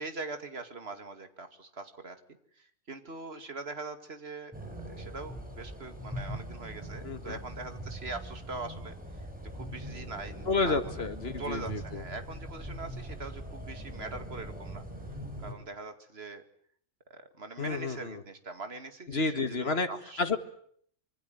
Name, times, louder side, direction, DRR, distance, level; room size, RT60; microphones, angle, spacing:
voice 1, 0.0-2.2 2.6-9.3 9.5-10.9 11.4-14.8 15.4-16.4 17.1-20.4, right 3 dB, 55° right, 8 dB, 2.5 m, -42 dB
sound 1, 4.5-15.5, right 1 dB, 5° right, 6.2 m, -41 dB
voice 2, 7.0-7.4 10.5-12.0 17.6-18.2 19.1-19.9 20.2-20.4, left 3 dB, 50° left, 8 dB, 2.2 m, -30 dB
26.0 x 24.0 x 9.3 m, 0.64 s
omnidirectional pair, 1.3 m